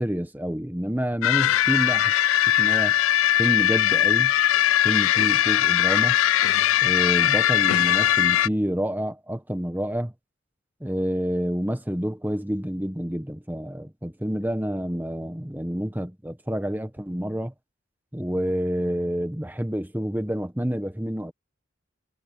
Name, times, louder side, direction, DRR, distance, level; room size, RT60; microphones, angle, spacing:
voice 1, 0.0-2.1 2.6-3.0 3.4-4.3 4.8-6.2 6.8-10.1 10.8-17.5 18.1-21.3, equal, 10° right, 1.2 m, -28 dB
sound 1, 1.2-8.5, left 12 dB, 85° left, 0.3 m, -20 dB
head